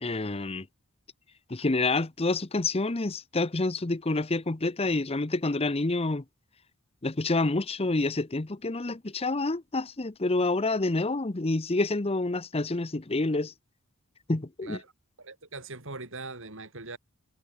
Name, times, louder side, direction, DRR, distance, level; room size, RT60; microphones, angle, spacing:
voice 1, 0.0-0.7 1.5-6.2 7.0-13.5 14.3-14.8, left 2 dB, 25° left, 0.8 m, -28 dB
voice 2, 14.6-14.9 15.2-17.0, right 3 dB, 60° right, 5.3 m, -41 dB
head